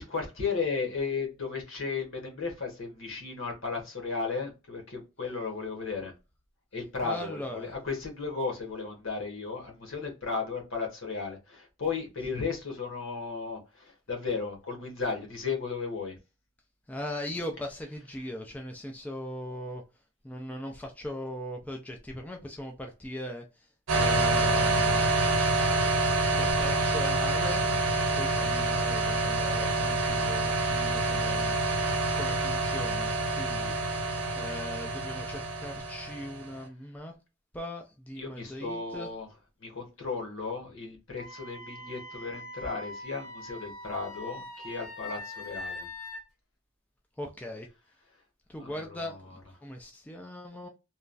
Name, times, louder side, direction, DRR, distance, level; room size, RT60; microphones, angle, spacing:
voice 1, 0.0-6.1 6.7-16.2 38.2-39.3 39.6-45.9 48.6-49.2, left 4 dB, 70° left, 1.1 m, -35 dB
voice 2, 7.0-7.7 16.9-19.8 20.2-25.2 26.3-31.6 32.1-33.8 34.3-37.1 37.5-39.1 47.2-47.7 48.5-50.7, left 1 dB, 5° left, 0.3 m, -39 dB
sound 1, 23.9-36.5, right 2 dB, 75° right, 0.6 m, -27 dB
Wind instrument woodwind instrument, 41.2-46.2, left 1 dB, 90° left, 0.9 m, -42 dB
3.0 x 2.3 x 2.5 m
head